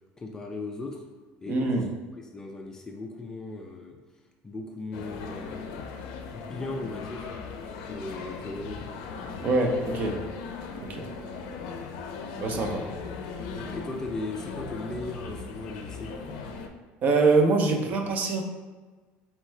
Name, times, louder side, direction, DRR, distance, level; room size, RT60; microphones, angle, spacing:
voice 1, 0.2-1.0 1.4-1.8 2.2-4.0 4.4-5.9 6.3-7.3 7.9-8.9 13.5-16.2, left 2 dB, 15° left, 2 dB, 0.3 m, -37 dB
voice 2, 1.5-1.8 9.4-10.2 10.9-11.1 12.4-12.8 17.0-18.4, right 3 dB, 40° right, 3 dB, 0.6 m, -24 dB
sound 1, 4.9-16.7, left 5 dB, 80° left, 0.5 m, -38 dB
4.4 x 3.6 x 3.2 m, 1.3 s
cardioid pair, 160°, 4 cm